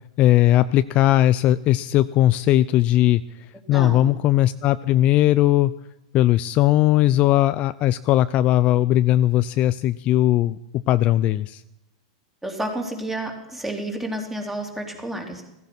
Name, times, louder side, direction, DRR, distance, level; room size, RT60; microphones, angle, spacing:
voice 1, 0.2-5.7 6.1-11.6, left 14 dB, 35° left, 14 dB, 0.5 m, -19 dB
voice 2, 3.7-4.2 12.4-15.4, right 1 dB, 5° right, 3 dB, 3.4 m, -30 dB
16.0 x 15.0 x 6.0 m, 0.92 s
supercardioid pair, 135°, 4 cm